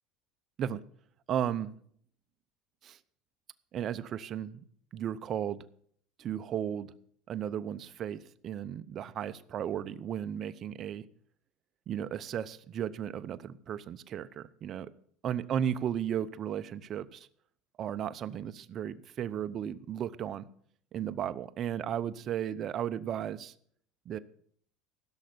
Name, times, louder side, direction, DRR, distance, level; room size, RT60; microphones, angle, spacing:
voice 1, 1.3-1.7 2.8-3.0 3.7-4.6 4.9-5.7 6.2-6.9 7.3-11.0 11.9-14.9 15.2-17.3 17.8-20.4 20.9-23.5 24.1-24.2, right 9 dB, 40° right, 13 dB, 0.8 m, -35 dB
16.0 x 6.5 x 7.9 m, 0.63 s
supercardioid pair, 130°, 0 cm